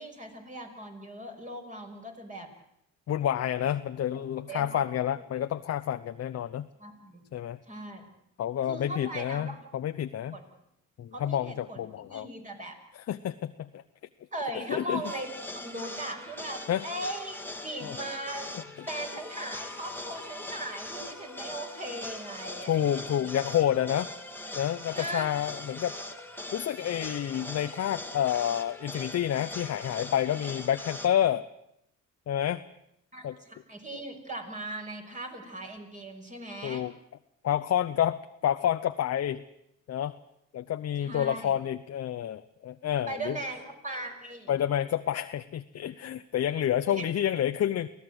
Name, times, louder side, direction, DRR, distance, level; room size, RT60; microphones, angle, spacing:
voice 1, 0.0-2.5 4.1-4.8 6.8-7.2 7.7-8.1 8.7-9.6 10.3-10.4 11.1-11.8 12.1-12.8 14.3-17.4 17.6-18.5 18.8-23.4 24.9-25.3 33.1-36.8 41.0-41.6 43.1-44.6 46.8-47.1, right 1 dB, 25° right, 3 dB, 5.8 m, -39 dB
voice 2, 3.1-6.7 7.3-7.6 8.4-10.4 11.0-12.3 13.1-13.8 14.7-15.0 16.7-16.8 17.8-18.0 22.7-24.1 24.5-26.0 26.5-31.5 32.3-32.6 33.2-33.4 36.6-36.9 37.4-39.4 39.9-40.1 40.5-43.4 44.5-47.9, left 10 dB, 55° left, 9 dB, 0.8 m, -29 dB
sound 1, 15.0-31.1, left 2 dB, 5° left, 2.1 m, -41 dB
24.5 x 17.0 x 7.9 m, 0.78 s
cardioid pair, 90°, 30 cm